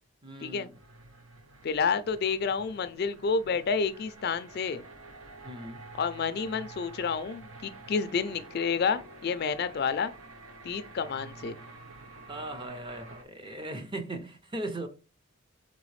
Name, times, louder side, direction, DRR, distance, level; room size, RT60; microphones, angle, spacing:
voice 1, 0.2-0.8 5.4-5.8 12.3-14.9, right 1 dB, 25° right, 0.6 m, -38 dB
sound 1, 0.7-13.2, right 2 dB, 75° right, 0.9 m, -49 dB
voice 2, 1.6-4.8 5.9-10.1 10.6-11.6, left 5 dB, 50° left, 0.3 m, -29 dB
4.3 x 4.0 x 3.1 m
head